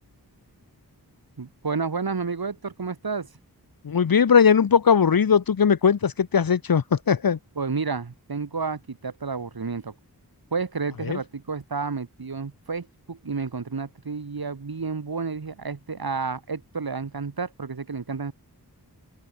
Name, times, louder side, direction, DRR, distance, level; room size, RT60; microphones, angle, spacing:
voice 1, 1.4-3.3 7.6-9.9 10.5-18.3, right 4 dB, 70° right, 3.7 m, -31 dB
voice 2, 3.8-7.4 11.0-11.2, left 6 dB, 60° left, 1.0 m, -19 dB
open air
wide cardioid pair, 80°, 38 cm